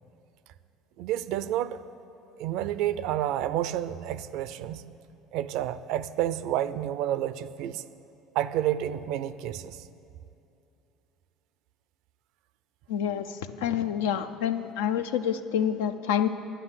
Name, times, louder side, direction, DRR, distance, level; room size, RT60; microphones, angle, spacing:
voice 1, 1.0-1.8 2.4-4.8 5.3-7.8 8.3-9.9, right 12 dB, 75° right, 15 dB, 0.4 m, -30 dB
voice 2, 12.9-13.3 13.6-16.3, left 9 dB, 85° left, 10 dB, 0.5 m, -27 dB
9.9 x 9.6 x 7.3 m, 2.7 s
supercardioid pair, 80°, 0 cm